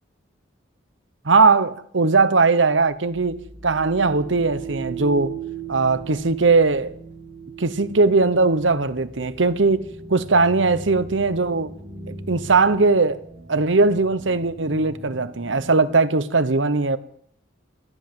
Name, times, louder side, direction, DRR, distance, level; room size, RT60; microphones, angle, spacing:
voice 1, 1.2-5.3 5.7-6.9 7.6-11.7 12.3-13.2 13.5-17.0, right 3 dB, 70° right, 1.0 m, -19 dB
sound 1, 2.9-15.9, right 5 dB, 40° right, 7.4 m, -38 dB
16.0 x 11.0 x 7.8 m
head